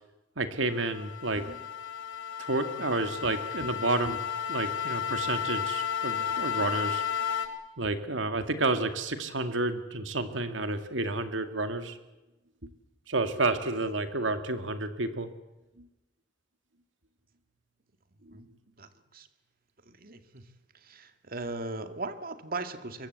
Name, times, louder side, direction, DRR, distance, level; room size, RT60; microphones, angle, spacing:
voice 1, 0.4-1.6 2.4-4.2 4.5-7.0 7.8-12.0 12.6-12.7 13.1-15.3 15.8-15.9 18.3-18.4, right 2 dB, 85° right, 8 dB, 2.2 m, -30 dB
sound 1, 0.6-7.5, left 8 dB, 75° left, 3.3 m, -33 dB
voice 2, 18.8-19.3 19.9-20.5 20.7-23.1, right 3 dB, 50° right, 8 dB, 2.1 m, -38 dB
23.5 x 22.0 x 8.2 m, 1.0 s
head